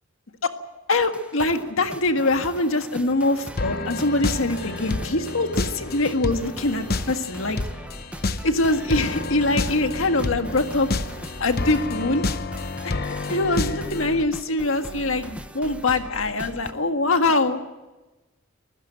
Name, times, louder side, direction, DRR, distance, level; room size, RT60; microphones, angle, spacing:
voice 1, 0.9-7.6 8.4-10.9 11.4-12.2 12.8-17.6, left 2 dB, 85° left, 7 dB, 1.7 m, -23 dB
sound 1, 1.1-16.7, right 1 dB, 5° right, 1.0 m, -40 dB
sound 2, 3.6-14.2, left 3 dB, 50° left, 0.9 m, -30 dB
24.0 x 15.5 x 9.1 m, 1.1 s
head